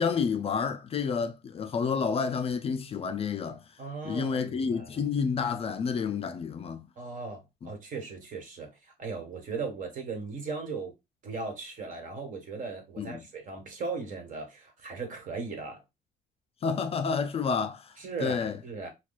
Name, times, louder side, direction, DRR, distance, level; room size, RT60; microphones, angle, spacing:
voice 1, 0.0-3.6 4.0-6.8 7.6-7.7 13.0-13.2 16.6-17.9 18.2-18.6, left 5 dB, 35° left, 0.4 m, -29 dB
voice 2, 3.8-5.0 7.0-10.9 11.2-15.8 18.0-18.9, right 4 dB, 50° right, 1.5 m, -38 dB
6.0 x 2.3 x 2.4 m
cardioid pair, 110°, 17 cm